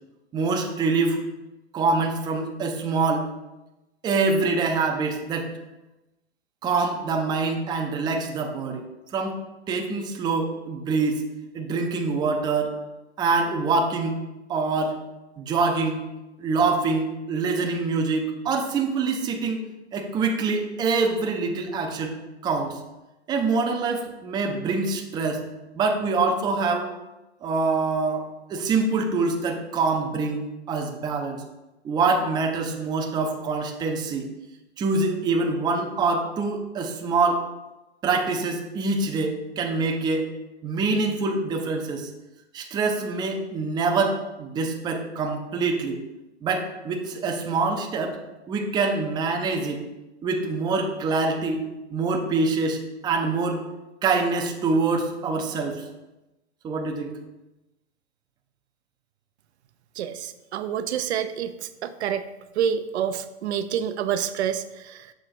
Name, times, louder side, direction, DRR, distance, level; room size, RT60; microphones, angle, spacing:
voice 1, 0.3-1.2 1.7-3.3 4.0-5.5 6.6-8.9 9.1-11.2 11.5-12.8 13.2-14.2 14.5-15.0 15.4-16.0 16.4-19.6 19.9-22.1 22.4-22.8 23.3-25.4 25.7-26.9 27.4-31.4 31.8-34.3 34.8-37.5 38.0-40.3 40.6-42.1 42.5-46.0 46.4-48.2 48.5-49.8 50.2-51.6 51.9-53.6 54.0-55.8 56.6-57.1, right 4 dB, 15° right, 3 dB, 0.5 m, -25 dB
voice 2, 60.0-62.3 62.6-65.1, right 8 dB, 75° right, 10 dB, 0.5 m, -28 dB
6.4 x 3.2 x 4.6 m, 1.0 s
hypercardioid pair, 120°, 33 cm